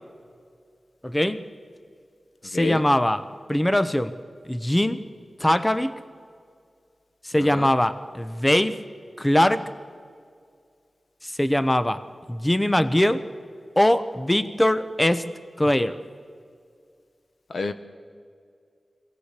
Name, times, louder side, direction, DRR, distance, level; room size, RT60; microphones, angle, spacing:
voice 1, 1.0-1.4 2.4-4.2 4.4-5.0 5.4-5.9 7.2-8.8 9.2-9.6 11.2-12.0 12.3-13.2 13.8-15.2 15.6-16.0, left 1 dB, 15° left, 12 dB, 0.9 m, -21 dB
voice 2, 7.4-7.7 17.5-17.7, left 3 dB, 75° left, 10 dB, 1.0 m, -29 dB
22.5 x 16.5 x 8.3 m, 2.2 s
wide cardioid pair, 60°, 0 cm